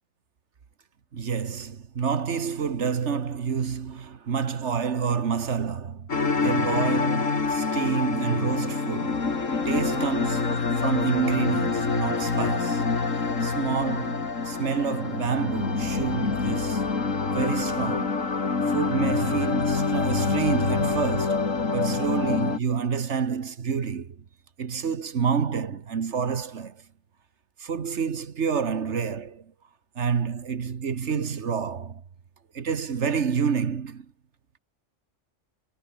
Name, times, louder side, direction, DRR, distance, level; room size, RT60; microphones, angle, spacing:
voice 1, 1.1-6.1 6.4-9.2 9.6-12.9 13.4-16.8 17.3-18.2 18.7-24.2 24.6-26.8 27.6-29.5 29.9-32.0 32.5-34.1, right 6 dB, 60° right, 1.6 m, -28 dB
sound 1, 6.1-22.6, left 4 dB, 70° left, 2.9 m, -26 dB
omnidirectional pair, 1.4 m